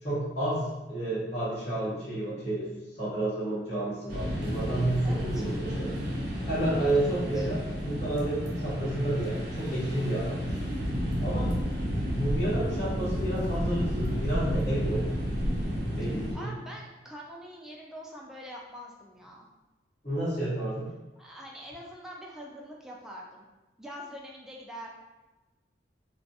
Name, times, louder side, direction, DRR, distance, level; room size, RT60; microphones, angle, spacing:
voice 1, 0.0-5.9 6.5-10.6 11.2-11.5 12.1-15.1 16.0-16.5 20.0-20.9, right 1 dB, 35° left, -14 dB, 1.1 m, -30 dB
sound 1, 4.1-16.3, equal, 55° right, 0.8 m, -31 dB
voice 2, 5.0-5.4 6.8-7.5 16.0-16.1 16.3-19.5 21.2-23.5 23.8-24.9, equal, 5° right, -3 dB, 0.3 m, -44 dB
2.4 x 2.3 x 4.0 m, 1.1 s
head